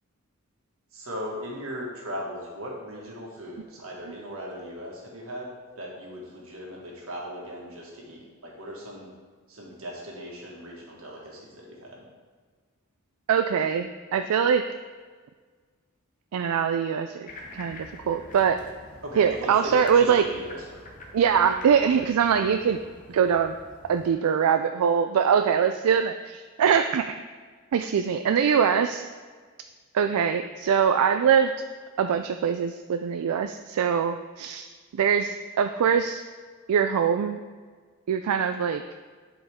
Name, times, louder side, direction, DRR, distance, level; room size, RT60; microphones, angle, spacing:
voice 1, 0.9-9.1 9.5-12.0 19.0-20.6, equal, 70° right, -2 dB, 1.9 m, -38 dB
voice 2, 13.3-14.6 16.3-18.6 19.2-20.3 21.1-22.8 23.1-23.5 23.8-27.2 27.7-29.1 29.9-31.5 32.0-34.7 34.9-36.2 36.7-37.4 38.1-38.8, right 7 dB, 90° right, 8 dB, 0.3 m, -23 dB
sound 1, 17.3-24.1, left 1 dB, 35° left, 0.9 m, -45 dB
11.0 x 5.1 x 3.6 m, 1.5 s
head